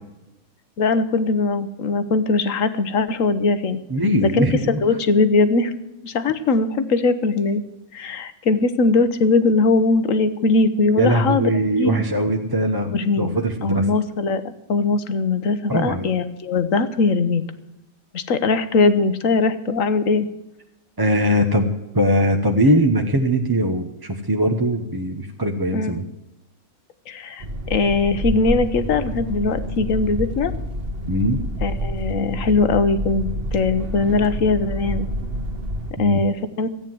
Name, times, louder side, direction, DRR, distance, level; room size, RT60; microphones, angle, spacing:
voice 1, 0.8-3.8 4.2-5.7 6.0-7.6 7.9-12.0 12.9-14.4 14.7-17.4 18.1-20.3 25.7-25.9 27.1-30.5 31.6-35.1 36.0-36.7, left 3 dB, 70° left, 12 dB, 1.4 m, -20 dB
voice 2, 3.9-4.8 11.0-12.9 13.2-13.9 15.7-16.1 21.0-26.0 31.1-31.4 36.0-36.2, right 1 dB, 20° right, 4 dB, 0.9 m, -20 dB
sound 1, 27.4-35.9, equal, 45° right, 1.6 m, -28 dB
14.0 x 9.2 x 7.7 m, 0.97 s
omnidirectional pair, 1.4 m